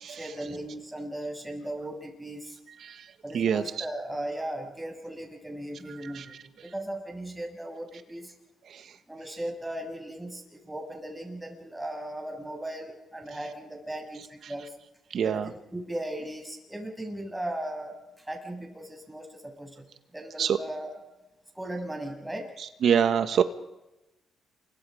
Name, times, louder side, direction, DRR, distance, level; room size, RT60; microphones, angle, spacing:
voice 1, 0.1-2.6 3.2-8.3 9.1-14.8 15.2-21.0 21.5-22.5, right 1 dB, 10° right, 2 dB, 7.6 m, -37 dB
voice 2, 15.1-15.5 20.4-20.6 22.8-23.4, right 8 dB, 60° right, 10 dB, 1.6 m, -24 dB
28.5 x 24.0 x 5.2 m, 1.0 s
cardioid pair, 90°, 0 cm